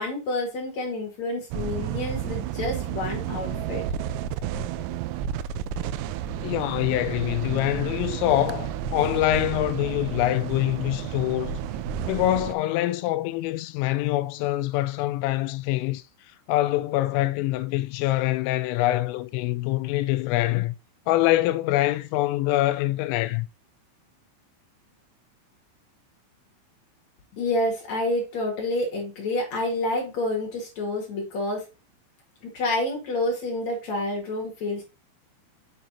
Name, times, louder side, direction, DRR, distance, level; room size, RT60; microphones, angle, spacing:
voice 1, 0.0-3.8 27.3-31.6 32.5-34.8, left 2 dB, 55° left, 2.1 m, -28 dB
sound 1, 1.5-12.5, right 10 dB, 90° right, 3.2 m, -31 dB
voice 2, 6.4-11.6 12.1-16.0 16.5-20.7 21.1-23.5, left 16 dB, 85° left, 3.1 m, -25 dB
6.8 x 6.4 x 2.7 m
omnidirectional pair, 5.7 m